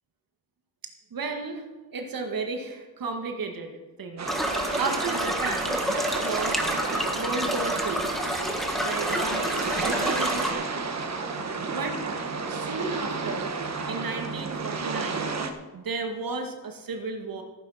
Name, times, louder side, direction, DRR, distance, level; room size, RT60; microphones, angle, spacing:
voice 1, 1.1-4.3 4.8-5.8 6.2-6.8 7.1-8.1 8.8-9.5 9.8-10.9 11.7-12.0 12.5-13.5 13.9-15.3 15.7-17.4, right 4 dB, 65° right, 4 dB, 1.9 m, -33 dB
sound 1, 4.2-15.5, right 4 dB, 45° right, 1.4 m, -31 dB
sound 2, 4.3-10.5, equal, ahead, 1.7 m, -29 dB
14.5 x 9.5 x 5.7 m, 1.2 s
wide cardioid pair, 110°, 37 cm